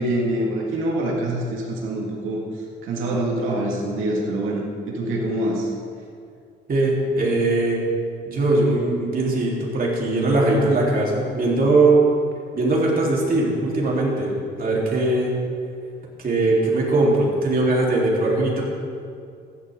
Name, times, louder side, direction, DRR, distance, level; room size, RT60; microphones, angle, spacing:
voice 1, 0.0-5.7, right 1 dB, 85° right, -2 dB, 2.0 m, -25 dB
voice 2, 6.7-7.8 8.2-12.0 12.5-14.3 14.6-15.3 16.2-18.6, right 2 dB, 45° right, -4 dB, 3.5 m, -20 dB
15.5 x 11.5 x 3.7 m, 2.4 s
cardioid pair, 90°, 20 cm